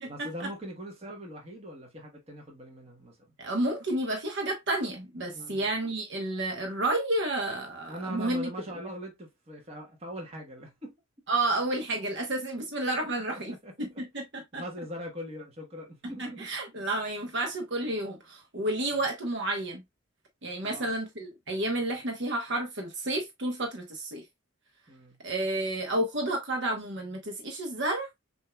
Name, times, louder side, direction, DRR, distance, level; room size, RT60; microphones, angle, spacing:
voice 1, 0.1-3.3 5.3-5.7 7.9-10.9 13.3-13.7 14.5-16.5 20.6-21.0 24.9-25.2, equal, 30° right, 1.2 m, -41 dB
voice 2, 3.4-8.5 11.3-14.6 16.2-19.8 20.4-24.2 25.2-28.1, right 1 dB, 60° right, 1.0 m, -31 dB
6.3 x 2.7 x 2.2 m
head